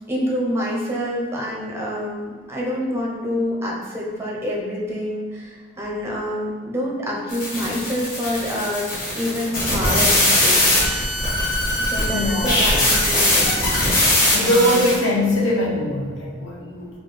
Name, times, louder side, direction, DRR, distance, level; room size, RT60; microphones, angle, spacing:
voice 1, 0.1-8.9 9.1-10.6 11.8-13.8, equal, 15° right, -3 dB, 0.5 m, -27 dB
sound 1, 7.3-15.0, left 1 dB, 45° left, 1.4 m, -20 dB
voice 2, 12.1-12.8 14.3-16.9, left 1 dB, 70° left, -2 dB, 0.6 m, -21 dB
4.3 x 2.3 x 3.1 m, 1.5 s
head